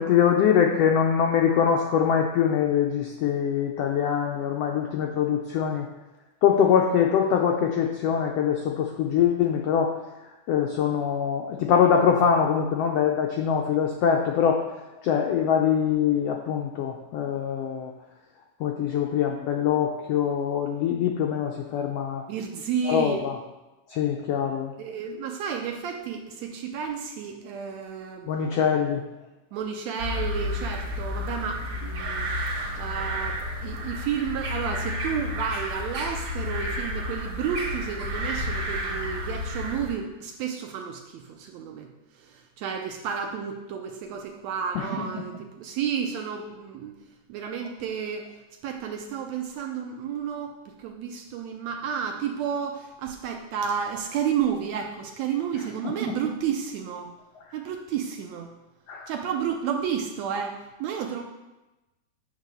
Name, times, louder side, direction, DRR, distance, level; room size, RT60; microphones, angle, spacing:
voice 1, 0.0-5.9 6.4-9.9 10.5-14.6 15.0-17.9 18.6-22.2 22.9-23.3 23.9-24.7 28.3-29.0 44.7-44.9 58.9-59.1, left 8 dB, 90° left, 2 dB, 1.4 m, -23 dB
voice 2, 22.3-23.2 24.8-28.3 29.5-32.3 32.8-41.9 42.2-46.9 47.3-48.3 48.6-57.1 57.5-58.5 59.1-61.2, right 7 dB, 75° right, 3 dB, 1.7 m, -31 dB
sound 1, 30.0-39.9, left 1 dB, 50° right, 2.1 m, -31 dB
8.9 x 3.3 x 6.6 m, 1.0 s
omnidirectional pair, 3.6 m